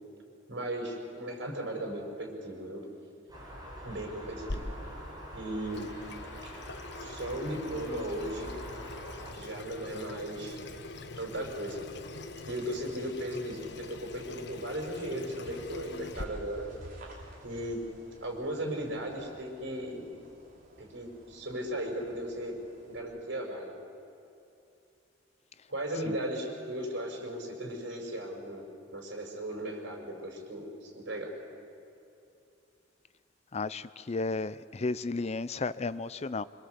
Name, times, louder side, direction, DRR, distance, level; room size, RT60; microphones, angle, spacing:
voice 1, 0.5-2.8 3.8-4.8 5.3-5.9 7.0-8.5 9.3-10.6 11.2-11.8 12.5-16.7 17.4-17.8 18.2-20.0 20.8-22.5 22.9-23.8 25.7-28.7 28.9-31.3, right 1 dB, 75° right, 2 dB, 5.6 m, -36 dB
sound 1, 3.3-9.3, equal, 20° right, 6.2 m, -44 dB
Water tap faucet / Sink (filling or washing), 4.5-16.2, left 2 dB, 65° left, 1.2 m, -44 dB
sound 2, 9.8-23.0, right 1 dB, 50° right, 5.3 m, -53 dB
voice 2, 33.5-36.4, left 3 dB, 35° left, 16 dB, 0.5 m, -33 dB
26.0 x 26.0 x 8.0 m, 2.7 s
head